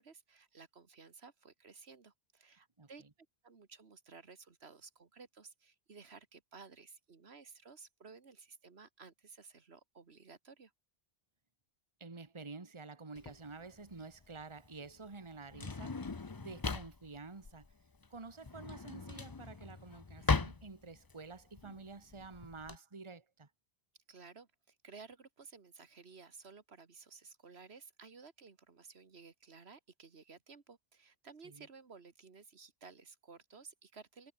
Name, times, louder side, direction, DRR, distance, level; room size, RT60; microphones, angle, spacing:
voice 1, 0.0-3.0 3.4-10.7 24.1-34.3, right 5 dB, 75° right, 1.9 m, -56 dB
voice 2, 12.0-17.7 18.1-23.5 31.4-31.7, right 3 dB, 25° right, 1.5 m, -50 dB
Drawer open or close, 13.2-22.8, left 4 dB, 25° left, 0.6 m, -39 dB
omnidirectional pair, 1.1 m